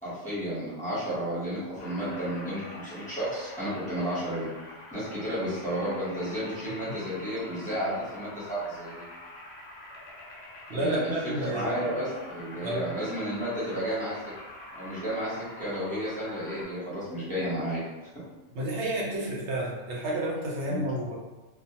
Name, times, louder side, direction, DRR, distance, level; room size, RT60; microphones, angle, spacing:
voice 1, 0.0-4.5 4.9-9.0 10.7-11.1 11.5-14.2 14.7-17.8 20.7-20.9, equal, 10° left, -10 dB, 0.7 m, -32 dB
sound 1, 1.8-16.6, left 2 dB, 65° left, 0.8 m, -45 dB
voice 2, 10.7-11.8 12.6-12.9 18.5-21.2, right 1 dB, 75° right, -4 dB, 0.8 m, -30 dB
2.2 x 2.1 x 2.8 m, 1.1 s
omnidirectional pair, 1.2 m